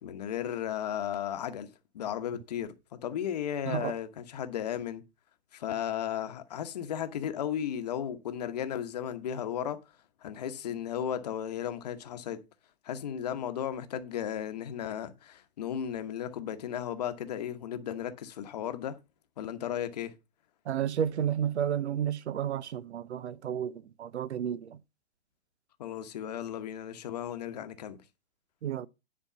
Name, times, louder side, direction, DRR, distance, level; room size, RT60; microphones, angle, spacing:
voice 1, 0.0-1.7 1.9-2.7 3.0-5.0 5.5-9.8 10.2-12.4 12.8-19.0 19.4-20.1 25.8-28.0, left 9 dB, 40° left, 1.0 m, -35 dB
voice 2, 20.6-24.8 28.6-28.9, right 9 dB, 90° right, 0.8 m, -31 dB
10.0 x 4.5 x 5.7 m
hypercardioid pair, 175°, 33 cm